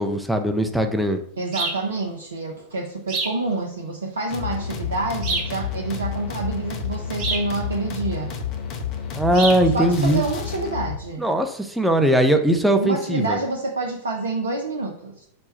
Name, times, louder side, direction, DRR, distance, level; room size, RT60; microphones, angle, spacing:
voice 1, 0.0-1.2 9.1-10.2 11.2-13.4, right 1 dB, ahead, 5 dB, 0.5 m, -20 dB
voice 2, 1.4-8.4 9.7-11.3 12.8-15.3, right 3 dB, 70° right, 1 dB, 0.5 m, -28 dB
sound 1, 1.5-1.9 3.1-3.4 5.2-5.6 7.2-7.5 9.3-9.7, right 3 dB, 40° right, 0.8 m, -27 dB
sound 2, 4.3-11.0, left 8 dB, 40° left, 0.6 m, -30 dB
4.2 x 2.2 x 4.4 m, 0.66 s
figure-of-eight pair, 90°, 0 cm